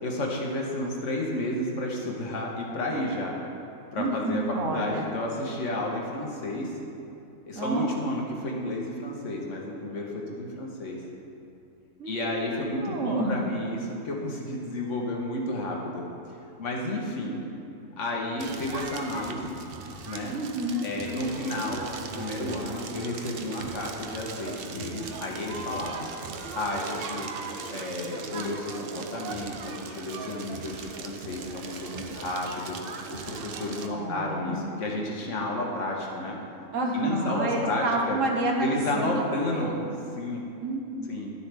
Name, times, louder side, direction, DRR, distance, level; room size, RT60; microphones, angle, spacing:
voice 1, 0.0-3.4 3.9-6.7 7.5-11.0 12.1-16.0 16.6-17.4 18.0-19.5 20.0-20.3 20.8-26.1 26.5-27.4 27.7-32.8 33.1-36.4 36.9-38.2 38.6-39.7 40.2-40.4 41.1-41.3, left 1 dB, 70° left, -1 dB, 1.5 m, -31 dB
voice 2, 4.0-5.1 7.5-7.9 12.0-13.7 20.3-20.9 33.9-34.7 36.7-39.2 39.5-39.8 40.6-41.1, right 1 dB, 75° right, 0 dB, 1.4 m, -29 dB
Crackle, 18.4-33.9, right 4 dB, 55° right, 0.7 m, -39 dB
11.5 x 7.0 x 3.4 m, 2.7 s
omnidirectional pair, 1.4 m